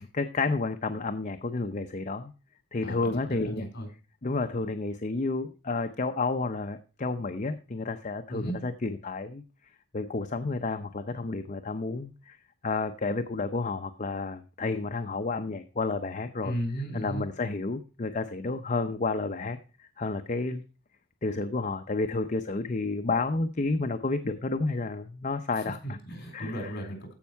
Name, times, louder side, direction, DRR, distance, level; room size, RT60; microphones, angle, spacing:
voice 1, 0.0-2.3 2.7-3.7 4.2-9.4 9.9-12.4 12.6-16.5 16.9-20.6 21.2-26.0 26.3-26.7, left 3 dB, 35° left, 7 dB, 0.6 m, -31 dB
voice 2, 2.8-3.9 8.3-8.6 16.4-17.2 25.8-27.1, equal, 50° left, 4 dB, 4.0 m, -35 dB
14.5 x 5.5 x 4.5 m, 0.34 s
head